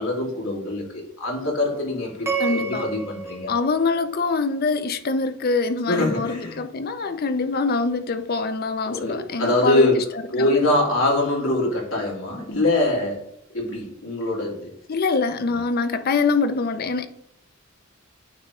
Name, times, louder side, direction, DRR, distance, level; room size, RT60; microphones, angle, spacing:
voice 1, 0.0-3.5 5.9-6.6 8.9-10.0 10.3-13.2 13.5-14.7 15.5-15.6, left 1 dB, 65° left, 2.3 m, -23 dB
sound 1, 2.3-4.6, right 4 dB, 10° right, 1.0 m, -30 dB
voice 2, 2.4-2.8 3.5-10.0 10.4-10.7 14.9-17.1, left 4 dB, 45° left, 0.6 m, -24 dB
9.2 x 3.1 x 3.8 m
head